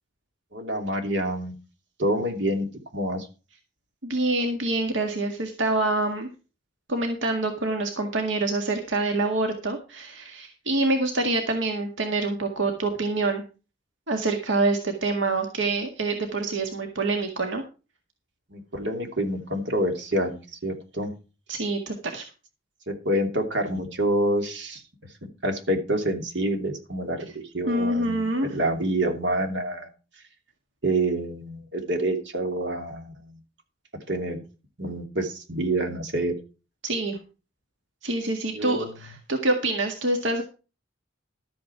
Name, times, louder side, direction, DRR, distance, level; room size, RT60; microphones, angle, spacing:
voice 1, 0.5-1.5 2.0-2.7 2.9-3.3 18.5-21.1 22.9-24.8 25.4-29.9 30.8-33.4 34.1-34.4 34.8-36.3 38.5-38.9, right 1 dB, 70° right, 4 dB, 3.0 m, -27 dB
voice 2, 4.0-6.3 6.9-13.4 14.1-17.6 21.5-22.2 27.7-28.6 36.8-37.2 38.0-40.4, right 2 dB, 85° right, 4 dB, 1.9 m, -26 dB
12.5 x 8.7 x 4.6 m, 0.33 s
head